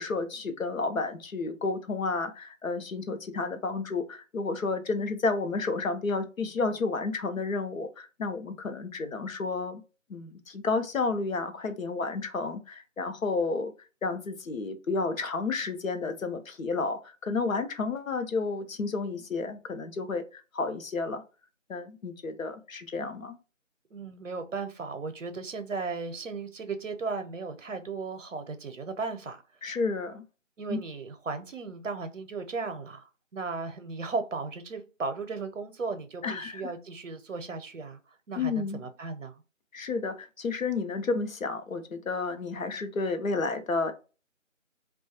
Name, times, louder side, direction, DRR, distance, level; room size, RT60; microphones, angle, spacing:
voice 1, 0.0-9.8 10.1-13.7 14.0-21.2 21.7-23.4 29.6-30.2 30.7-30.8 36.2-36.7 38.4-38.8 39.7-43.9, left 3 dB, 90° left, 0.7 m, -31 dB
voice 2, 23.9-29.4 30.6-38.0 38.3-39.3, right 4 dB, 70° right, 0.6 m, -36 dB
2.2 x 2.2 x 2.7 m
figure-of-eight pair, 175°, 39 cm